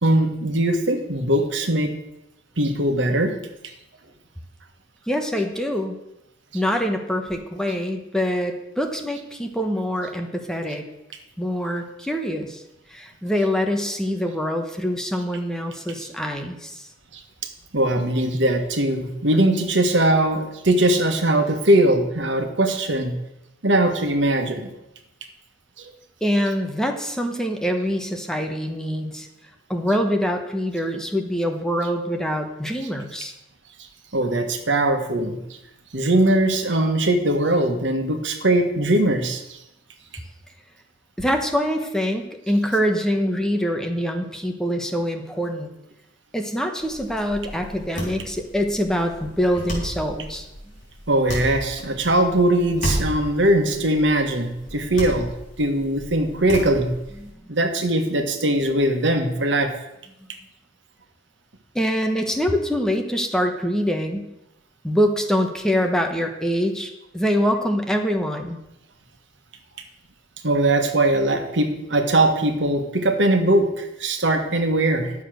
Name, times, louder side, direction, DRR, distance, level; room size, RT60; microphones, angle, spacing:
voice 1, 0.0-1.9 2.6-3.3 17.7-23.1 23.6-24.7 25.8-25.9 34.1-35.4 35.9-39.6 51.1-55.3 55.6-56.9 57.5-59.7 70.4-75.1, right 1 dB, 75° right, 6 dB, 1.5 m, -20 dB
voice 2, 5.1-6.0 6.5-10.9 11.4-12.6 12.9-16.9 26.2-29.3 29.7-33.3 41.2-45.7 46.3-50.5 57.2-57.3 61.7-64.3 64.8-68.6, equal, 5° left, 4 dB, 1.1 m, -24 dB
sound 1, 46.8-57.3, equal, 45° left, 3.9 m, -33 dB
11.0 x 7.3 x 6.3 m, 0.88 s
head